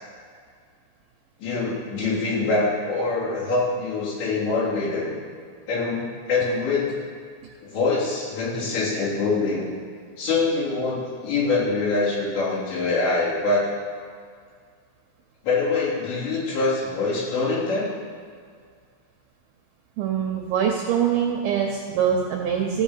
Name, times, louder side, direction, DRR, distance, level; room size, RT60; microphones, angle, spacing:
voice 1, 1.4-5.1 5.7-7.0 7.6-9.7 10.2-13.7 15.4-17.9, left 3 dB, 70° left, -9 dB, 5.6 m, -24 dB
voice 2, 20.0-22.8, right 8 dB, 80° right, 1 dB, 2.2 m, -23 dB
15.5 x 5.3 x 7.4 m, 2.1 s
omnidirectional pair, 5.3 m